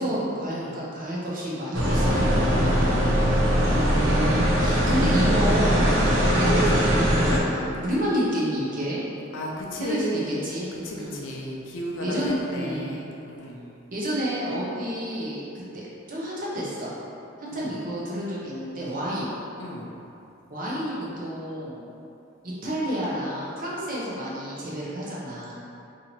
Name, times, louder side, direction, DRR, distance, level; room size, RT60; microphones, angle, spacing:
voice 1, 0.0-3.1 3.7-5.9 6.3-9.0 9.8-10.7 10.9-11.2 12.0-12.9 13.9-15.4 15.7-15.8 16.1-16.9 17.4-19.3 20.5-21.8 22.4-25.6, equal, 45° right, -7 dB, 0.8 m, -30 dB
sound 1, 1.7-7.4, equal, 85° right, 0.7 m, -21 dB
voice 2, 2.8-3.5 5.9-6.1 9.3-13.6 17.5-17.8 19.6-19.9, equal, 70° left, -2 dB, 0.5 m, -34 dB
2.7 x 2.7 x 4.3 m, 2.8 s
head